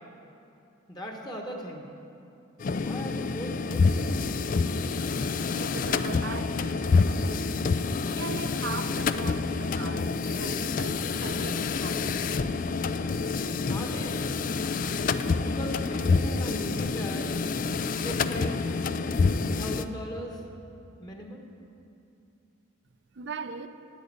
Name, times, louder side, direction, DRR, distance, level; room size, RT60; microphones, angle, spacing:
voice 1, 0.9-1.8 2.8-4.1 13.7-14.2 15.2-17.6 18.0-18.5 19.2-20.4 21.0-21.4, equal, 20° left, 1 dB, 1.2 m, -39 dB
sound 1, 2.6-19.9, left 4 dB, 40° left, 0.3 m, -27 dB
voice 2, 5.6-7.8 8.1-12.8 23.1-23.7, right 4 dB, 55° right, 10 dB, 0.6 m, -40 dB
10.5 x 8.9 x 8.7 m, 2.7 s
head